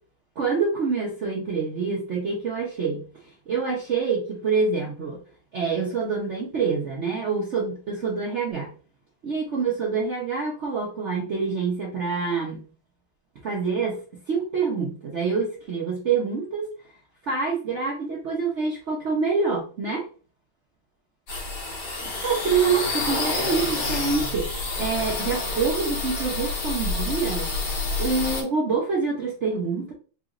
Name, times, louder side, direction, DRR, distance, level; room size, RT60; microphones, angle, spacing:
voice 1, 0.4-5.2 5.5-8.7 9.2-12.7 13.4-14.0 14.3-16.7 17.2-20.1 22.2-24.5 24.8-27.5 28.0-29.9, right 5 dB, 80° right, -2 dB, 0.6 m, -26 dB
sound 1, 21.3-28.4, left 3 dB, 75° left, 2.4 m, -28 dB
4.8 x 2.9 x 2.4 m, 0.39 s
omnidirectional pair, 2.3 m